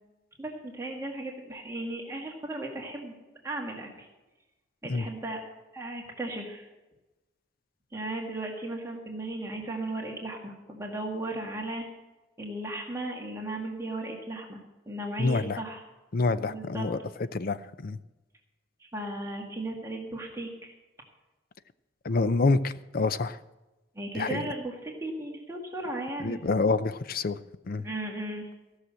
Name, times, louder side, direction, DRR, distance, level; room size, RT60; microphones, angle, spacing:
voice 1, 0.4-3.2 3.4-4.1 4.8-5.4 5.7-6.7 7.9-11.8 12.4-14.6 14.9-15.8 16.4-16.9 18.8-20.7 24.0-26.4 27.8-28.5, right 2 dB, 15° right, -1 dB, 1.9 m, -36 dB
voice 2, 15.2-15.6 16.1-17.0 17.3-18.0 22.0-23.4 24.1-24.5 26.2-27.4 27.6-27.9, left 3 dB, 50° left, 14 dB, 0.6 m, -27 dB
15.5 x 6.5 x 7.6 m, 1.1 s
head